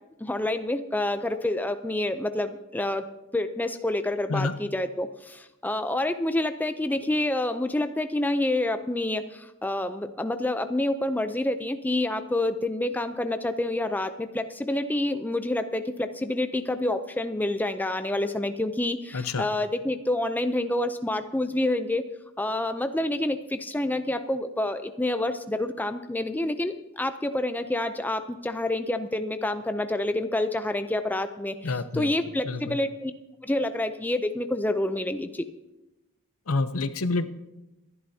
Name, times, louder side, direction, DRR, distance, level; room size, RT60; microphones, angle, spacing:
voice 1, 0.2-22.1 22.4-33.1 33.4-35.4, left 1 dB, 10° left, 8 dB, 0.5 m, -28 dB
voice 2, 19.1-19.5 31.6-32.1 32.5-32.8 36.5-37.3, left 3 dB, 75° left, 11 dB, 0.7 m, -28 dB
26.0 x 11.0 x 2.8 m, 1.0 s
head